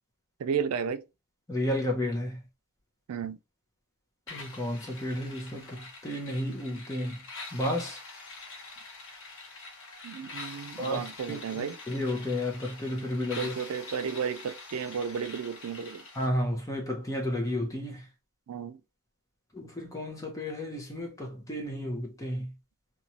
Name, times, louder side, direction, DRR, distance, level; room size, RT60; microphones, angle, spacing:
voice 1, 0.4-1.0 3.1-3.4 10.0-11.8 13.4-16.0 18.5-18.8, right 7 dB, 85° right, 0.4 m, -33 dB
voice 2, 1.5-2.4 4.3-7.2 7.5-8.0 10.8-11.0 11.3-13.5 16.2-18.1 19.5-22.5, left 1 dB, 15° left, 0.6 m, -32 dB
sound 1, 4.3-16.3, left 3 dB, 60° left, 0.9 m, -45 dB
2.7 x 2.3 x 2.9 m
head